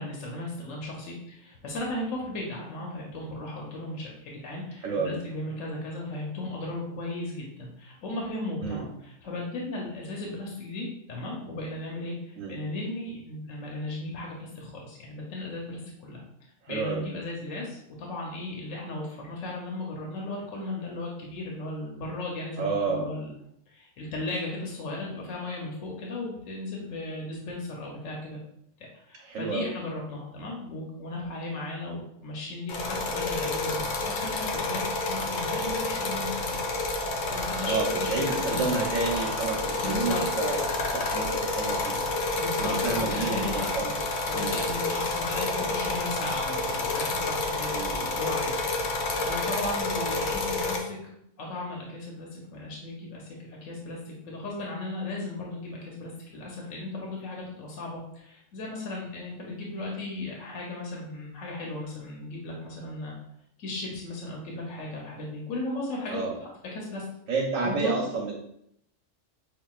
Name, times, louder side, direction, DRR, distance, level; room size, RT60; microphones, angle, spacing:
voice 1, 0.0-16.2 16.7-23.3 23.7-28.4 28.8-36.7 37.2-38.7 39.8-40.2 42.3-44.0 44.3-47.8 48.2-51.0 51.4-63.1 63.6-66.2 66.7-67.0 67.6-68.0, left 2 dB, 80° left, -2 dB, 1.1 m, -36 dB
voice 2, 4.8-5.2 8.6-8.8 12.4-12.6 16.6-17.0 22.6-23.1 29.2-29.7 37.6-42.0 42.6-43.9 44.3-44.6 47.7-48.1 66.1-66.4 67.3-68.3, right 4 dB, 80° right, -2 dB, 1.1 m, -30 dB
sound 1, 32.7-50.8, left 2 dB, 55° left, 0.6 m, -29 dB
5.6 x 2.3 x 2.3 m, 0.74 s
omnidirectional pair, 1.3 m